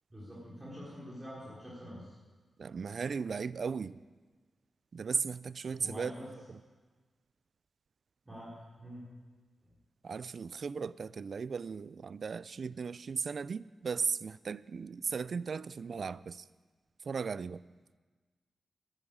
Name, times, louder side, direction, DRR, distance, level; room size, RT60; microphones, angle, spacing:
voice 1, 0.1-2.2 5.8-6.3 8.2-9.1, equal, 20° right, 3.6 m, -46 dB
voice 2, 2.6-4.0 4.9-6.1 6.5-6.6 10.0-16.5 17.0-17.6, right 5 dB, 55° right, 0.3 m, -36 dB
11.0 x 10.5 x 8.8 m
wide cardioid pair, 115°, 0 cm